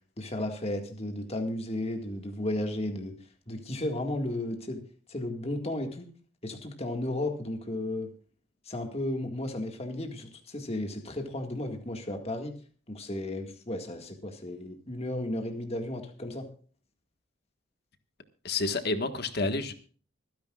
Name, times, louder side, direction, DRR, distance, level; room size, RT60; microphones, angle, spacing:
voice 1, 0.2-3.2 3.5-4.8 5.1-6.1 6.4-8.1 8.7-12.5 12.9-16.5, left 1 dB, 30° left, 4 dB, 1.9 m, -34 dB
voice 2, 18.4-19.7, left 3 dB, 50° left, 8 dB, 1.6 m, -29 dB
25.5 x 10.5 x 2.4 m, 0.42 s
head